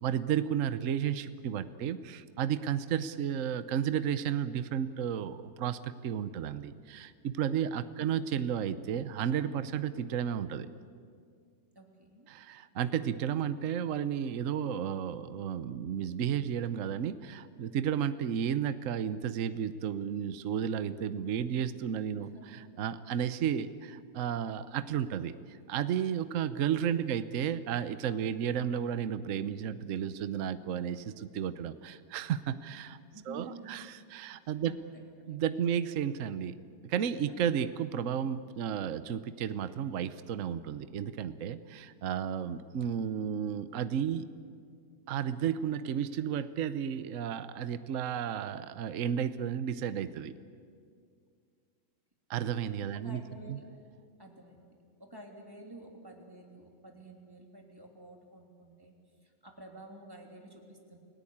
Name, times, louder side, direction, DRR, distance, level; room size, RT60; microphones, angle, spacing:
voice 1, 0.0-10.7 12.3-33.0 33.3-34.8 35.3-36.6 36.8-44.3 45.1-50.3 52.3-53.2 53.5-53.6, right 8 dB, 55° right, 13 dB, 1.1 m, -33 dB
voice 2, 11.7-12.3 22.1-22.6 27.0-27.2 33.1-33.8 34.6-35.0 35.3-35.6 37.3-37.4 53.0-53.7 54.2-54.7 55.0-58.9 59.2-61.0, right 2 dB, 10° right, 1 dB, 3.1 m, -51 dB
29.5 x 17.5 x 8.7 m, 2.2 s
omnidirectional pair, 1.9 m